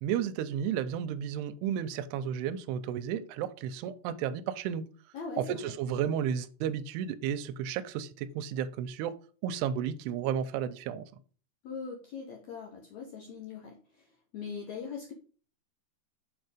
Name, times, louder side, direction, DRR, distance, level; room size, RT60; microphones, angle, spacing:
voice 1, 0.0-4.9 5.4-9.2 9.4-11.1, right 9 dB, 85° right, 2.6 m, -33 dB
voice 2, 5.1-5.7 11.6-15.1, left 5 dB, 85° left, 1.6 m, -41 dB
6.6 x 4.5 x 5.0 m
omnidirectional pair, 4.7 m